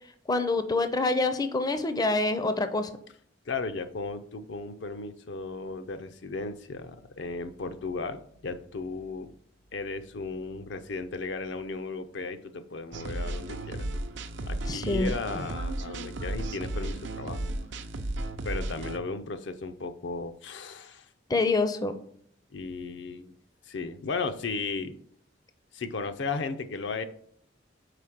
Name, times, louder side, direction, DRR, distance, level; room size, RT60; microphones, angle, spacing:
voice 1, 0.3-2.9 14.7-15.1 21.3-21.9, left 3 dB, 20° left, 9 dB, 0.5 m, -26 dB
voice 2, 3.5-9.3 9.7-13.9 14.5-17.5 18.4-21.1 22.5-23.3 23.7-25.0 25.7-27.0, left 4 dB, 70° left, 9 dB, 0.5 m, -35 dB
sound 1, 12.9-19.0, right 1 dB, 70° right, 0.5 m, -34 dB
4.9 x 4.5 x 5.8 m, 0.63 s
head